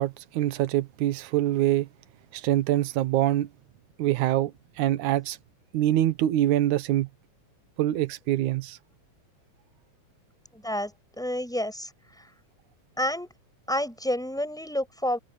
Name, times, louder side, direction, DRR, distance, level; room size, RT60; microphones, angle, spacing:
voice 1, 0.0-1.9 2.3-3.5 4.0-4.5 4.8-5.4 5.7-7.1 7.8-8.8, right 13 dB, 80° right, 2.5 m, -24 dB
voice 2, 10.5-10.9 11.2-11.9 12.2-12.3 13.0-13.3 13.7-15.2, left 1 dB, ahead, 7.4 m, -29 dB
omnidirectional pair, 3.5 m